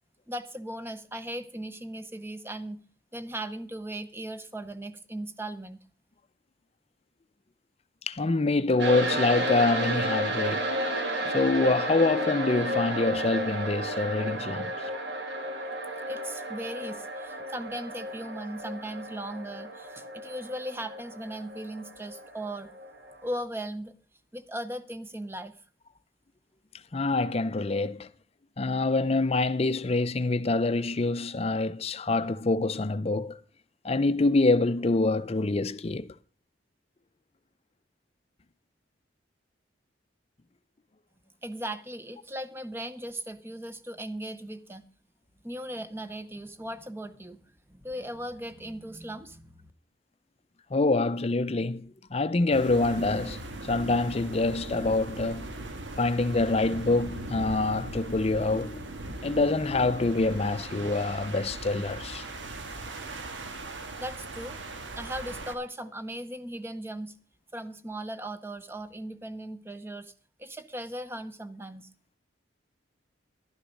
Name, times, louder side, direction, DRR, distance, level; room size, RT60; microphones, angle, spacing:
voice 1, 0.3-2.8 3.1-5.8 16.1-22.7 23.2-23.9 24.3-25.6 41.4-44.9 45.4-47.4 47.7-49.7 64.0-64.6 64.9-67.2 67.5-70.1 70.4-71.9, right 1 dB, 15° right, 0.7 m, -38 dB
voice 2, 8.1-10.7 11.3-14.7 26.9-28.1 28.6-33.4 33.8-36.1 50.7-55.5 56.0-58.9 59.2-62.3, left 3 dB, 35° left, 0.5 m, -26 dB
sound 1, 8.8-23.4, right 1 dB, 65° right, 2.4 m, -32 dB
sound 2, 52.5-65.5, right 2 dB, 85° right, 1.4 m, -39 dB
11.5 x 10.0 x 5.2 m
head